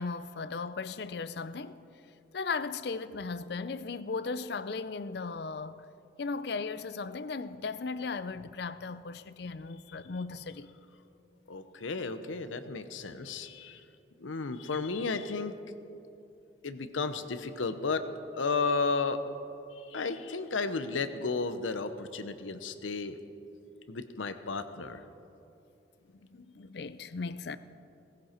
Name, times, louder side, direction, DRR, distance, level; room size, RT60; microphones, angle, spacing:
voice 1, 0.0-1.8 2.3-5.8 6.2-10.7 26.3-27.6, left 4 dB, 55° left, 0.5 m, -36 dB
voice 2, 11.5-13.8 14.2-15.5 16.6-18.1 18.4-19.2 19.7-23.2 23.9-25.0, left 4 dB, 90° left, 0.8 m, -33 dB
17.0 x 16.0 x 4.4 m
head